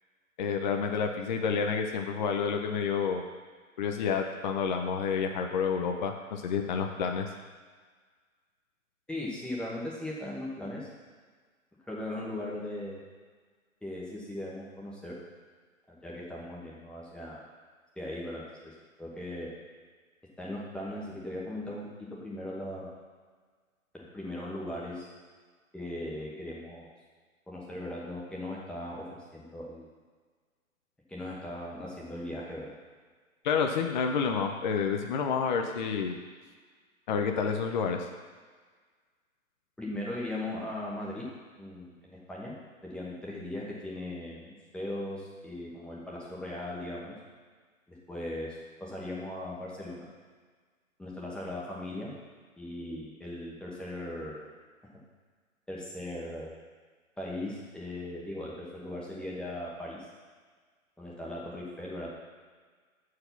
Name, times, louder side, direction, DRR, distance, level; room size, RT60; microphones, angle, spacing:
voice 1, 0.4-3.2 3.8-7.3 33.4-36.2 37.1-38.1, left 6 dB, 35° left, 3 dB, 0.6 m, -29 dB
voice 2, 9.1-10.9 11.9-13.0 13.8-15.2 15.9-17.4 18.0-18.7 19.0-19.5 20.4-23.0 23.9-25.1 25.7-26.9 27.5-29.9 31.1-32.7 39.8-41.3 41.6-42.5 42.8-47.2 47.9-48.5 48.8-50.1 51.0-52.1 52.6-54.5 55.7-56.5 57.2-60.0 61.0-62.1, left 1 dB, ahead, -6 dB, 1.2 m, -38 dB
7.7 x 4.8 x 5.8 m, 1.5 s
hypercardioid pair, 140°, 42 cm